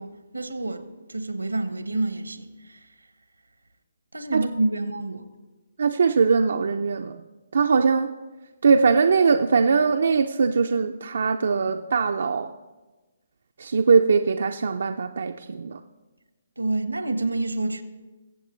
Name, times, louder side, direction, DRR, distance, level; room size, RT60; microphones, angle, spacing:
voice 1, 0.0-2.8 4.1-5.2 16.6-17.8, right 2 dB, 90° right, 0.9 m, -28 dB
voice 2, 5.8-7.2 7.5-8.1 8.6-12.5 13.6-15.8, right 5 dB, 65° right, 0.4 m, -21 dB
21.0 x 7.7 x 3.1 m
figure-of-eight pair, 140°, 0 cm